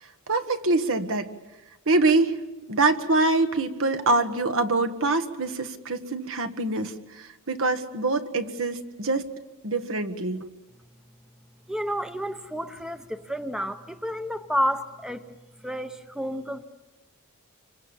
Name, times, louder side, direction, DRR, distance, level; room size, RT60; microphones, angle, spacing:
voice 1, 0.3-1.3 1.9-2.4 2.7-9.3 9.6-10.5, right 3 dB, 65° right, 8 dB, 1.6 m, -24 dB
voice 2, 11.7-15.3 15.6-16.6, equal, 5° right, 9 dB, 0.8 m, -30 dB
29.0 x 25.0 x 7.3 m, 1.1 s
head